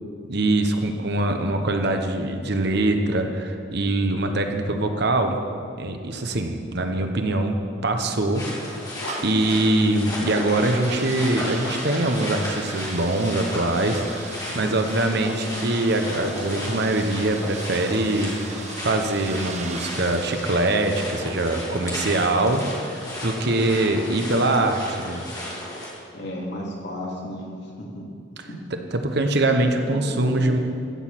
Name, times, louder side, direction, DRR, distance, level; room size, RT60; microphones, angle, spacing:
voice 1, 0.3-5.4 5.8-8.5 9.2-25.2 28.7-30.6, right 2 dB, 60° right, 5 dB, 1.1 m, -23 dB
sound 1, 8.3-25.9, left 1 dB, 20° left, 3.0 m, -34 dB
sound 2, 8.6-23.8, right 4 dB, 35° right, 1.0 m, -40 dB
sound 3, 8.9-9.6 11.6-12.2 13.6-14.4 15.2-17.1, left 3 dB, 90° left, 0.9 m, -42 dB
voice 2, 26.1-27.5 27.9-28.0 28.5-28.6 29.8-30.6, equal, 65° left, -2 dB, 2.8 m, -33 dB
15.0 x 6.5 x 7.5 m, 2.3 s
head